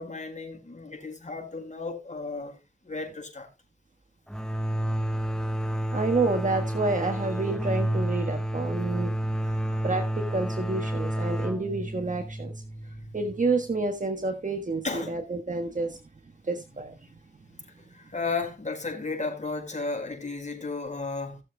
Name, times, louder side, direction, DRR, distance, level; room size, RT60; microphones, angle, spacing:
voice 1, 0.0-2.6 2.8-3.5 9.4-9.8 12.9-13.2 14.8-15.2 17.9-21.4, left 3 dB, 40° left, 4.7 m, -34 dB
sound 1, 4.3-13.8, right 1 dB, 5° left, 1.2 m, -30 dB
voice 2, 5.9-9.1 9.8-12.6 13.1-16.0 16.4-17.2, right 3 dB, 45° right, 1.4 m, -29 dB
18.5 x 7.0 x 2.3 m
cardioid pair, 45°, 18 cm